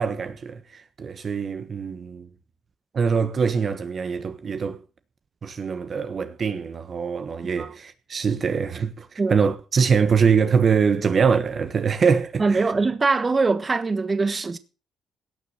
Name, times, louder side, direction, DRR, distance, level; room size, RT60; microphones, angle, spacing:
voice 1, 0.0-2.3 2.9-4.8 5.4-12.7, right 6 dB, 45° right, 1.3 m, -23 dB
voice 2, 12.4-14.6, right 3 dB, 30° right, 1.4 m, -22 dB
17.5 x 6.9 x 6.6 m
cardioid pair, 90°, 0 cm